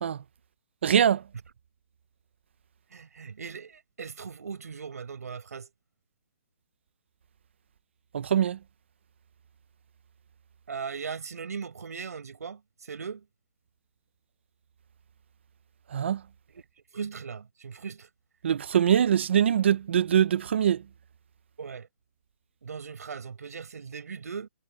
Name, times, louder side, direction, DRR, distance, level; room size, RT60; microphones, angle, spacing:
voice 1, 0.8-1.2 8.1-8.6 15.9-16.2 18.4-20.8, right 9 dB, 50° right, 0.7 m, -23 dB
voice 2, 2.9-5.7 10.7-13.2 16.5-16.6 16.9-18.1 21.6-21.9 22.6-24.5, right 6 dB, 85° right, 5.7 m, -38 dB
hypercardioid pair, 175°, 8 cm